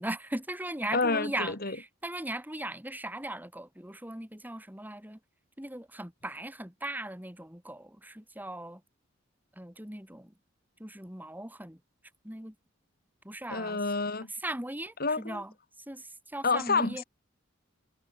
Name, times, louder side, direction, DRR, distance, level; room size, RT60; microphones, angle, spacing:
voice 1, 0.0-5.2 5.6-8.8 9.6-10.3 10.8-11.8 12.2-12.5 13.2-13.8 14.4-15.5 15.9-17.0, right 1 dB, 10° right, 4.6 m, -38 dB
voice 2, 0.9-1.8 13.5-14.3 15.0-15.4 16.4-17.0, left 4 dB, 50° left, 4.8 m, -29 dB
head